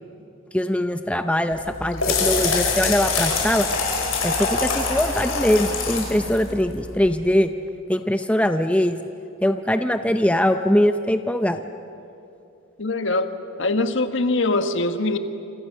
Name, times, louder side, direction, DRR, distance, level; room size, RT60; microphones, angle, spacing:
voice 1, 0.5-3.7 4.2-7.5 7.9-9.1 9.4-11.6, left 1 dB, 5° left, 8 dB, 0.6 m, -21 dB
sound 1, 1.5-7.1, left 4 dB, 80° left, 6.0 m, -25 dB
voice 2, 12.8-13.3 13.6-15.2, left 2 dB, 60° left, 8 dB, 1.5 m, -22 dB
28.0 x 26.5 x 6.6 m, 2.7 s
head